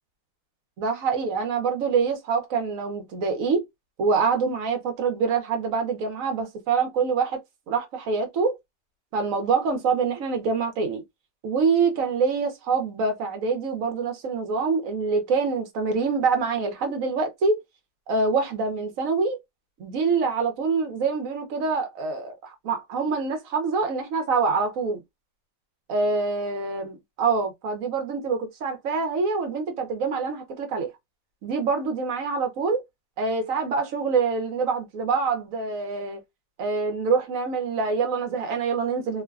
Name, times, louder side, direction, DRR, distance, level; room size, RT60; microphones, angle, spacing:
voice 1, 0.8-3.6 4.0-7.4 7.7-8.5 9.1-11.0 11.4-17.6 18.1-19.4 19.8-25.0 25.9-30.9 31.4-32.8 33.2-36.2 36.6-39.2, right 4 dB, 60° right, 1.0 m, -25 dB
3.0 x 2.2 x 2.3 m
omnidirectional pair, 1.8 m